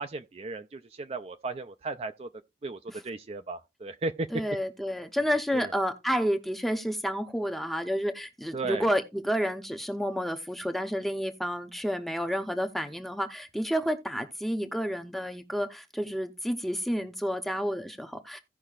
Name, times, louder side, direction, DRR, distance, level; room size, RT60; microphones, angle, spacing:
voice 1, 0.0-2.3 2.6-4.3 5.5-5.7 8.5-8.9, right 3 dB, 35° right, 0.4 m, -35 dB
voice 2, 4.3-18.4, equal, ahead, 0.7 m, -30 dB
16.5 x 5.5 x 2.4 m
head